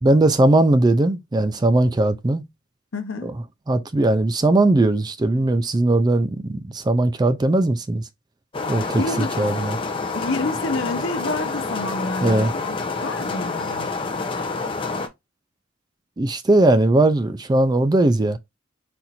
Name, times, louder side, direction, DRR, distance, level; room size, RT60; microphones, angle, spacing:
voice 1, 0.0-2.4 3.2-3.3 3.7-8.0 8.7-9.0 9.4-9.8 12.2-12.5 16.2-18.4, right 2 dB, 20° right, 0.4 m, -19 dB
voice 2, 2.9-3.3 8.7-9.3 10.1-13.9, left 2 dB, 75° left, 0.8 m, -29 dB
sound 1, 8.5-15.1, left 3 dB, 25° left, 0.6 m, -28 dB
4.3 x 2.5 x 4.1 m
head